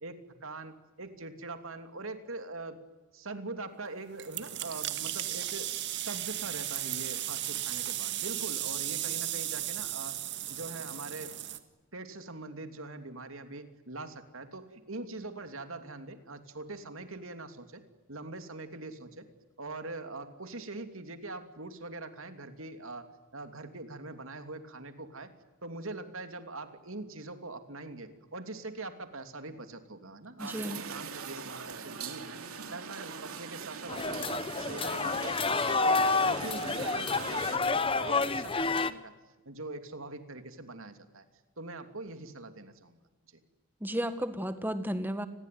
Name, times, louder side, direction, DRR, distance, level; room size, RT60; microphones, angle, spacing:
voice 1, 0.0-2.8 3.1-10.2 10.5-11.4 11.9-17.8 18.1-19.3 19.6-25.3 25.6-32.4 32.7-39.1 39.4-41.2 41.6-43.0 43.3-43.4, right 2 dB, 70° right, 8 dB, 2.9 m, -43 dB
sound 1, 4.2-11.6, right 13 dB, 55° right, 1.8 m, -35 dB
voice 2, 30.4-30.8 43.8-45.3, equal, 10° right, 10 dB, 1.7 m, -33 dB
sound 2, 30.4-37.6, right 6 dB, 90° right, 2.8 m, -42 dB
sound 3, 33.9-38.9, left 3 dB, 25° left, 1.0 m, -29 dB
29.5 x 21.5 x 9.4 m, 1.2 s
head